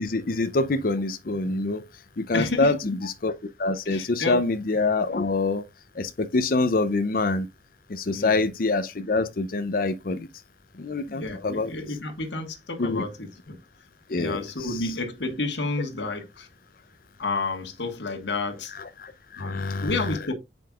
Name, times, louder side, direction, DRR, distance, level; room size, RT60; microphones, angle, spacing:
voice 1, 0.0-1.8 2.2-3.3 3.6-5.6 6.0-7.5 7.9-10.3 10.8-11.7 12.8-13.0 14.1-14.9 19.0-20.3, left 3 dB, 50° left, 0.6 m, -26 dB
voice 2, 2.3-3.0 3.9-4.4 8.1-8.4 11.1-13.6 14.2-16.5 17.2-18.7 19.4-20.3, left 3 dB, 80° left, 1.6 m, -30 dB
7.6 x 5.2 x 2.4 m
head